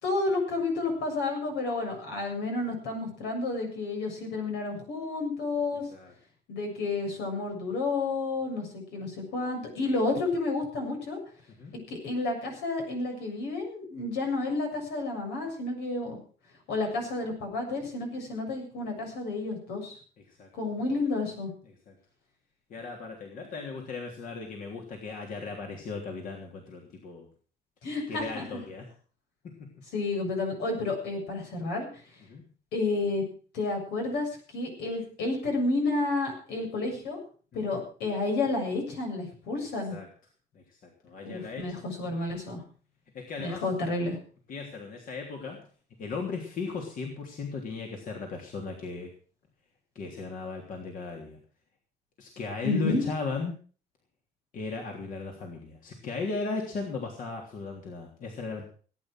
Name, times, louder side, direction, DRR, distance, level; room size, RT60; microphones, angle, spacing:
voice 1, 0.0-5.8 6.5-11.2 11.9-16.2 16.7-20.0 20.5-21.5 27.8-28.6 29.9-32.0 32.7-33.2 33.5-37.2 37.5-40.0 41.2-42.6 43.4-44.2 52.6-53.0, left 3 dB, 80° left, 3 dB, 7.4 m, -31 dB
voice 2, 22.7-27.3 28.1-28.9 29.6-29.7 32.3-32.4 37.7-37.8 39.9-40.1 40.5-41.8 43.1-43.7 44.5-45.6 46.0-49.1 49.9-51.4 52.2-53.5 54.5-58.6, left 4 dB, 55° left, 1 dB, 3.3 m, -36 dB
18.0 x 9.7 x 6.2 m, 0.41 s
cardioid pair, 110°, 17 cm